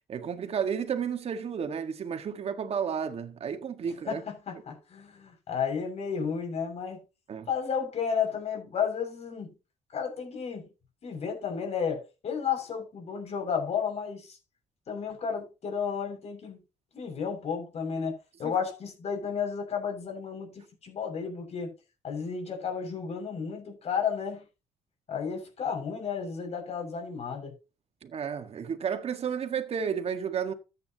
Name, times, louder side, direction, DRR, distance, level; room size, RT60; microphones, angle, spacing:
voice 1, 0.1-4.2 7.3-7.5 18.4-18.5 28.0-30.5, right 7 dB, 50° right, 1.7 m, -32 dB
voice 2, 4.1-7.0 7.5-9.5 9.9-10.7 11.0-14.4 14.9-16.6 16.9-21.7 22.0-24.5 25.1-27.5, left 6 dB, 55° left, 6.8 m, -32 dB
14.0 x 8.7 x 3.0 m
cardioid pair, 100°, 13 cm